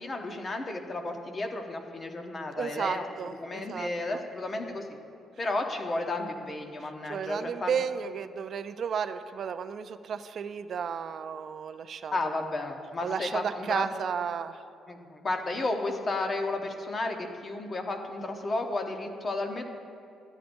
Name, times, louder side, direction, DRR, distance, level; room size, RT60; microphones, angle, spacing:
voice 1, 0.0-3.0 3.4-5.0 5.4-7.8 12.1-13.9 14.9-19.6, left 2 dB, 30° left, 4 dB, 0.8 m, -33 dB
voice 2, 2.6-4.2 7.1-12.5 13.0-14.6, right 7 dB, 55° right, 10 dB, 0.3 m, -33 dB
12.5 x 8.9 x 2.6 m, 2.6 s
cardioid pair, 115°, 0 cm